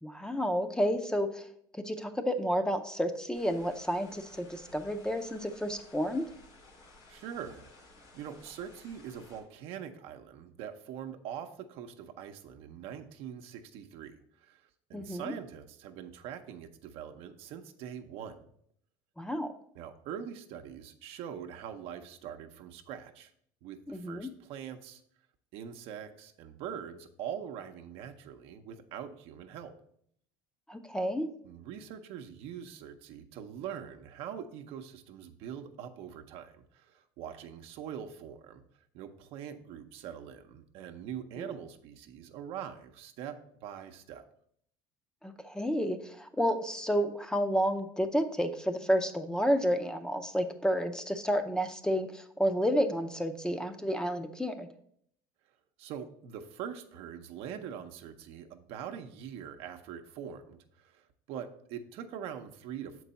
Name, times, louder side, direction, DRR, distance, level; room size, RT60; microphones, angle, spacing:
voice 1, 0.0-1.5 1.7-6.2 14.9-15.3 19.2-19.5 23.9-24.3 30.7-31.3 41.4-41.5 45.2-54.7, equal, 5° left, 8 dB, 0.5 m, -30 dB
sound 1, 3.3-9.4, left 2 dB, 80° left, 2.3 m, -56 dB
voice 2, 7.1-7.6 8.1-18.4 19.7-23.3 23.6-25.0 25.5-29.7 31.4-38.6 38.9-43.3 43.6-44.2 55.8-63.0, right 8 dB, 65° right, 7 dB, 0.7 m, -43 dB
6.6 x 4.6 x 4.0 m, 0.68 s
supercardioid pair, 100°, 11 cm